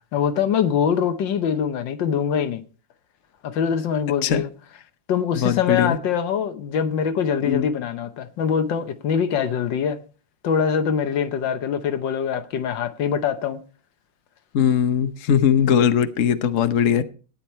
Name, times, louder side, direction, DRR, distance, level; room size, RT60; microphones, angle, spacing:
voice 1, 0.1-2.6 3.4-4.5 5.1-10.0 10.4-13.6, left 7 dB, 70° left, 1.6 m, -23 dB
voice 2, 5.4-6.0 7.4-7.7 14.5-17.0, left 8 dB, 55° left, 0.9 m, -20 dB
13.0 x 9.7 x 4.3 m
omnidirectional pair, 2.2 m